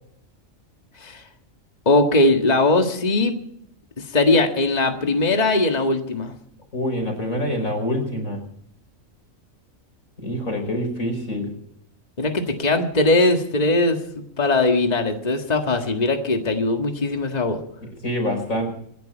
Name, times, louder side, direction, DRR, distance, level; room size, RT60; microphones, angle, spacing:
voice 1, 1.9-3.4 4.0-6.3 12.2-17.6, left 2 dB, 30° left, 4 dB, 1.9 m, -20 dB
voice 2, 6.7-8.4 10.2-11.5 18.0-18.7, left 1 dB, 90° left, 4 dB, 5.6 m, -25 dB
26.5 x 11.0 x 4.6 m, 0.68 s
omnidirectional pair, 1.4 m